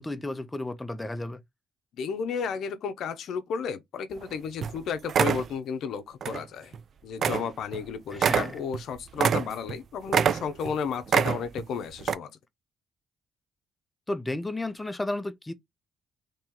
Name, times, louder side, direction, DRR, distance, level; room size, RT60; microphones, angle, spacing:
voice 1, 0.0-1.4 8.1-8.5 14.1-15.5, left 2 dB, 15° left, 0.6 m, -33 dB
voice 2, 2.0-6.7 7.0-12.3, left 6 dB, 70° left, 0.7 m, -33 dB
sound 1, 4.2-4.3 4.6-4.8 5.1-5.5 6.2-6.4 6.7-6.8 7.2-7.5 7.7-7.8 8.1-9.8 10.1-10.7 11.1-11.7 12.0-12.1, right 7 dB, 55° right, 0.3 m, -25 dB
2.9 x 2.9 x 3.7 m
cardioid pair, 90°, 0 cm